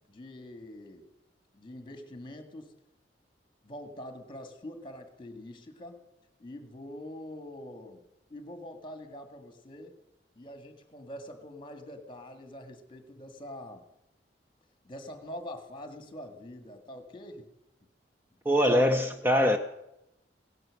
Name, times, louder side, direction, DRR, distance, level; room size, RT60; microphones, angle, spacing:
voice 1, 0.1-1.1 1.5-2.7 3.6-6.0 6.4-8.0 8.3-9.9 10.4-13.8 14.8-17.5, left 1 dB, 30° left, 7 dB, 1.8 m, -44 dB
voice 2, 18.5-19.6, equal, 10° right, 7 dB, 0.6 m, -23 dB
17.0 x 10.5 x 6.5 m, 0.89 s
head